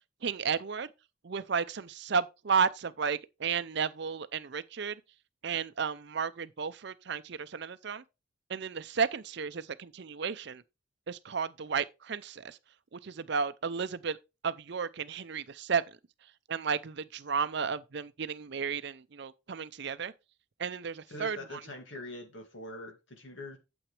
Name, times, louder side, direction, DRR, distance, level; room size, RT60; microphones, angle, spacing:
voice 1, 0.2-0.9 1.2-5.0 5.4-8.0 8.5-10.6 11.1-12.6 12.9-14.2 14.4-15.8 16.5-20.1 20.6-21.4, right 6 dB, 55° right, 0.5 m, -33 dB
voice 2, 21.1-23.6, left 1 dB, 65° left, 2.2 m, -43 dB
9.0 x 7.9 x 3.2 m
head